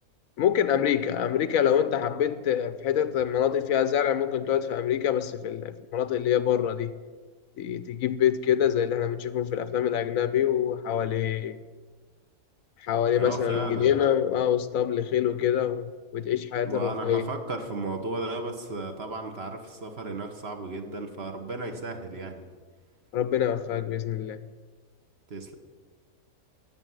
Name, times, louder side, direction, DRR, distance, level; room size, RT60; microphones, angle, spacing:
voice 1, 0.4-6.9 7.6-11.6 12.8-17.3 23.1-24.4, left 9 dB, 70° left, 1.0 m, -25 dB
voice 2, 13.1-14.0 16.6-22.5 25.3-25.6, right 3 dB, 45° right, 1.4 m, -35 dB
13.0 x 7.1 x 9.5 m
omnidirectional pair, 1.5 m